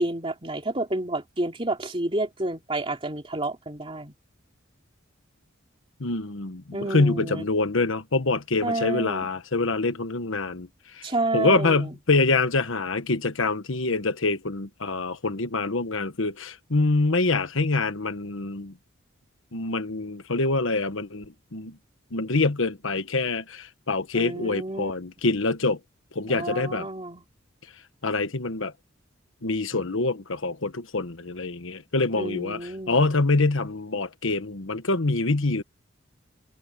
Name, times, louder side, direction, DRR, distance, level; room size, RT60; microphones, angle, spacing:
voice 1, 0.0-4.1 6.7-7.5 8.6-9.3 11.0-12.0 24.1-24.9 26.3-27.2 32.1-33.0, right 2 dB, 25° right, 3.1 m, -30 dB
voice 2, 6.0-10.7 10.9-11.0 11.3-18.7 19.5-21.8 22.1-25.8 26.1-26.9 28.0-28.7 29.4-35.6, left 3 dB, 75° left, 1.3 m, -25 dB
head